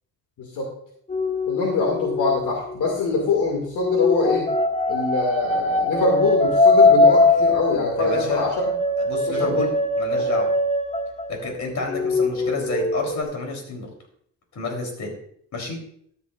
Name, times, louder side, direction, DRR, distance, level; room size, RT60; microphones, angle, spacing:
sound 1, 1.1-3.2 3.8-11.5 11.8-13.2, left 2 dB, 20° left, 1.0 m, -21 dB
voice 1, 1.5-4.5 4.9-8.5 9.3-9.7, left 3 dB, 85° left, -1 dB, 2.4 m, -24 dB
voice 2, 8.0-8.4 9.0-10.5 11.3-13.9 14.5-15.1 15.5-15.8, left 3 dB, 60° left, 1 dB, 3.7 m, -29 dB
13.0 x 10.5 x 2.5 m, 0.66 s
cardioid pair, 105°, 31 cm